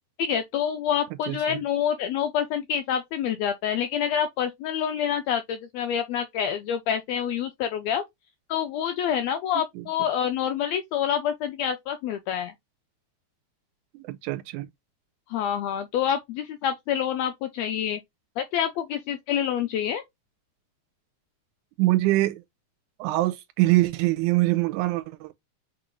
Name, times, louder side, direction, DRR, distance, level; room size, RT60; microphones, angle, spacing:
voice 1, 0.2-8.0 8.5-12.5 15.3-18.0 18.4-20.0, left 9 dB, 80° left, 1.5 m, -27 dB
voice 2, 1.3-1.6 9.8-9.9 13.9-14.7 21.8-22.4 23.0-25.3, right 18 dB, 90° right, 2.1 m, -24 dB
6.0 x 2.6 x 3.0 m
omnidirectional pair, 3.5 m